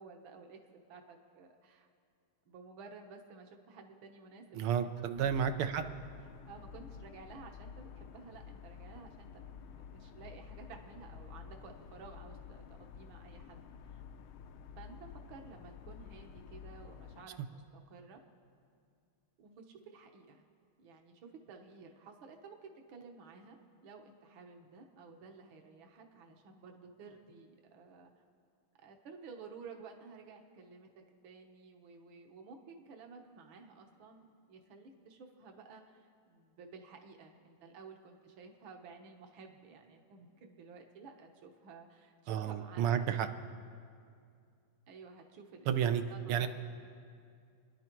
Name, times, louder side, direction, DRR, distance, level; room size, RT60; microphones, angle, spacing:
voice 1, 0.0-1.9 2.5-5.3 5.6-5.7 6.5-14.0 14.8-18.2 19.4-20.4 20.8-28.1 28.8-43.1 44.9-45.7 46.1-46.5, right 4 dB, 70° right, 3 dB, 1.9 m, -53 dB
voice 2, 4.5-5.8 42.3-43.3 45.7-46.0 46.3-46.5, right 8 dB, 90° right, 8 dB, 1.8 m, -31 dB
sound 1, 5.1-17.3, left 7 dB, 80° left, 1.5 m, -51 dB
28.5 x 11.0 x 4.5 m, 2.4 s
omnidirectional pair, 2.3 m